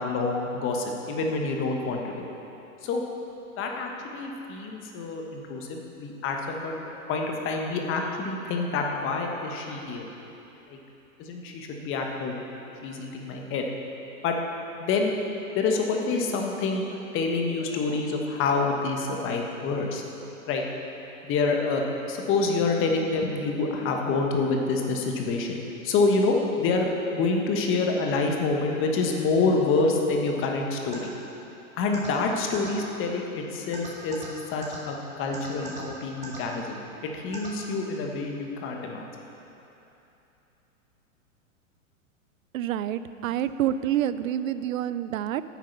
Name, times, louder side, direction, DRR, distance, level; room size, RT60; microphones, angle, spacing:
voice 1, 0.0-2.3 2.8-3.0 3.6-6.8 7.1-10.1 10.7-10.8 11.2-12.4 12.8-13.6 14.2-14.3 14.8-15.1 15.5-20.0 20.5-20.6 21.2-31.1 31.8-39.1, left 3 dB, 30° left, 1 dB, 1.2 m, -27 dB
sound 1, 30.9-31.0 31.9-32.1 32.5-32.7 33.7-34.3 34.6-34.8 35.3-35.8 36.2-36.4 37.3-37.5, right 4 dB, 15° right, 2.0 m, -38 dB
voice 2, 42.5-45.4, right 11 dB, 70° right, 13 dB, 0.5 m, -27 dB
9.4 x 7.5 x 5.6 m, 3.0 s
hypercardioid pair, 120°, 42 cm